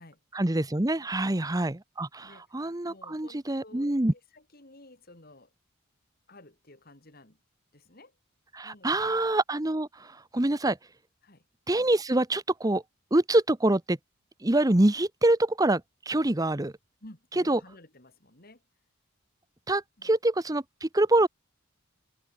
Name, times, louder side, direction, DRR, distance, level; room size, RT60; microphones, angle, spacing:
voice 1, 0.3-4.1 8.5-10.8 11.7-12.8 13.1-14.0 14.4-16.7 17.5-17.6 19.7-21.3, right 1 dB, 15° right, 0.8 m, -25 dB
voice 2, 2.2-2.5 2.9-3.9 4.3-5.5 6.3-7.4 7.7-8.2 8.6-9.3 11.2-11.5 17.0-18.6 20.0-20.1, left 1 dB, 45° left, 3.8 m, -53 dB
head